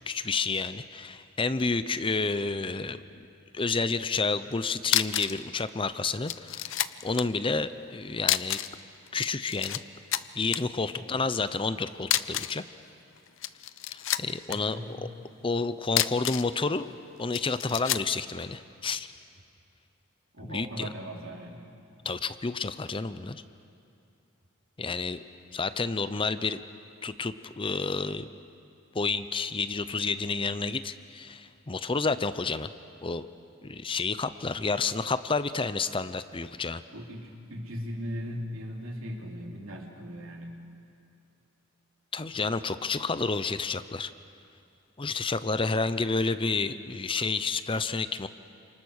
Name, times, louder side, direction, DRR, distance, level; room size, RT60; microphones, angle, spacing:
voice 1, 0.0-3.3 3.5-6.7 7.0-8.6 9.1-9.8 10.3-12.6 13.9-15.0 15.4-16.9 17.2-19.1 20.4-20.9 22.0-23.4 24.8-25.2 25.5-26.6 27.0-28.3 28.9-32.7 33.0-33.3 33.6-36.8 42.1-44.1 45.0-48.3, left 4 dB, 25° left, 13 dB, 0.6 m, -30 dB
sound 1, 4.5-4.6 4.8-5.4 5.7-5.8 6.3-7.3 8.2-8.8 9.1-9.8 10.1-10.6 12.0-12.6 13.3-14.6 15.8-16.5 17.3-18.1, left 13 dB, 65° left, 0.7 m, -29 dB
voice 2, 10.9-11.3 14.5-15.1 20.3-21.7 36.9-40.7, equal, 75° right, 0 dB, 3.5 m, -39 dB
28.5 x 27.0 x 6.5 m, 2.5 s
head